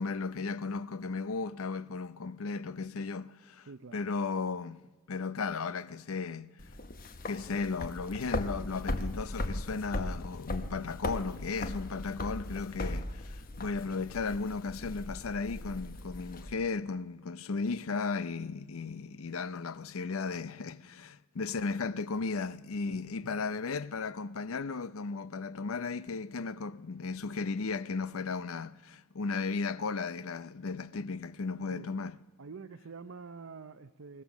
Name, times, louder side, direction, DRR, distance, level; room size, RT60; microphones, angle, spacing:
voice 1, 0.0-3.7 3.9-4.8 5.1-6.5 7.2-32.2, left 4 dB, 75° left, 0.6 m, -35 dB
voice 2, 3.6-4.0 22.9-23.1 23.4-23.5 31.7-31.9 32.4-34.2, right 4 dB, 65° right, 0.6 m, -47 dB
sound 1, 6.6-16.5, left 1 dB, 40° left, 0.9 m, -38 dB
20.5 x 19.5 x 7.2 m
head